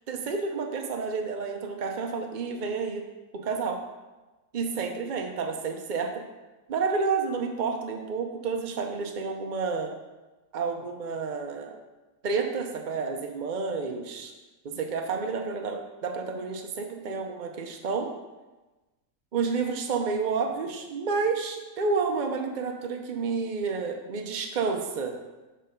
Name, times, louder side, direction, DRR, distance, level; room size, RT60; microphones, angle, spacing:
voice 1, 0.1-3.0 3.3-3.8 4.5-6.1 6.7-9.9 10.5-11.8 12.2-14.3 14.6-18.1 19.3-25.1, right 4 dB, 75° right, 3 dB, 0.4 m, -30 dB
6.7 x 5.1 x 5.1 m, 1.1 s
omnidirectional pair, 1.9 m